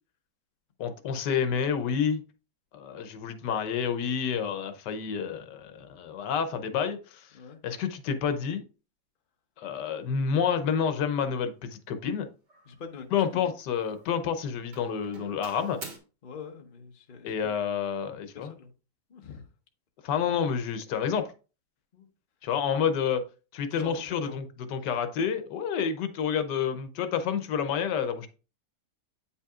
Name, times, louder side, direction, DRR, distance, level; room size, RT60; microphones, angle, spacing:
voice 1, 0.8-2.2 2.7-7.3 7.6-8.6 9.6-12.3 13.1-15.8 17.2-18.5 20.0-21.3 22.4-23.2 23.5-24.4 24.7-28.3, left 7 dB, 85° left, 1.4 m, -29 dB
Doorbell, 9.7-9.9 10.5-10.8 11.1-11.5 12.5-13.6 13.8-14.3 14.7-16.0, right 3 dB, 85° right, 2.1 m, -48 dB
voice 2, 12.6-13.1 16.2-17.4 18.3-18.7 19.1-19.4 21.9-22.1 23.7-24.4, left 6 dB, 35° left, 1.0 m, -44 dB
8.5 x 5.6 x 2.4 m
omnidirectional pair, 1.8 m